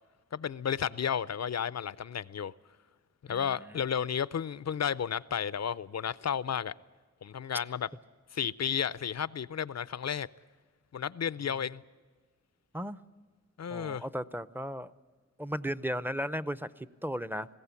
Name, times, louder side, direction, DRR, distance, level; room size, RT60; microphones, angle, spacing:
voice 1, 0.3-2.5 3.3-6.7 7.2-7.9 8.3-10.3 10.9-11.8 13.6-14.0, left 8 dB, 60° left, 0.5 m, -32 dB
voice 2, 3.3-3.8 11.4-11.6 12.7-13.0 13.7-14.9 15.4-17.5, equal, 5° right, 0.6 m, -36 dB
20.5 x 16.5 x 8.3 m
wide cardioid pair, 60°, 29 cm